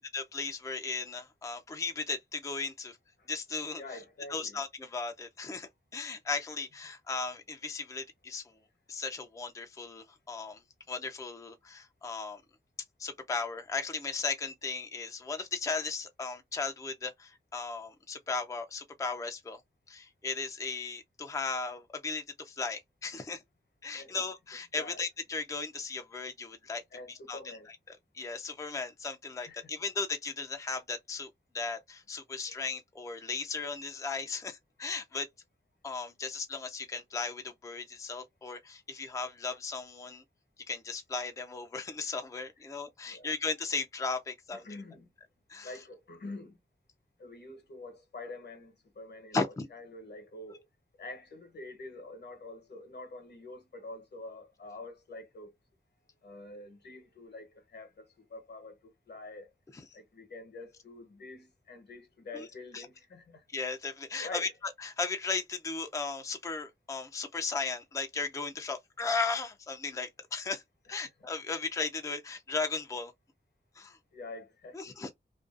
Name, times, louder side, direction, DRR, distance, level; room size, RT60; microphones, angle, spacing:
voice 1, 0.0-3.0 3.3-4.0 4.3-8.4 8.9-10.6 10.9-12.4 13.0-19.6 19.9-23.4 23.8-26.8 27.1-27.6 28.1-31.3 31.5-35.3 35.8-40.2 40.7-44.6 45.5-45.7 49.3-49.7 62.3-62.5 62.7-62.9 63.5-64.5 64.8-70.6 70.9-73.1 73.8-74.0 74.7-75.1, left 4 dB, 15° left, 0.4 m, -36 dB
voice 2, 3.8-4.6 23.9-24.2 24.8-25.0 26.9-27.7 29.4-29.7 32.5-32.6 43.0-43.3 44.5-45.1 45.6-46.6 47.2-50.6 51.0-55.5 56.2-59.5 59.9-63.4 64.2-64.5 74.1-75.1, left 2 dB, 65° left, 0.9 m, -46 dB
2.5 x 2.2 x 2.3 m
wide cardioid pair, 85°, 19 cm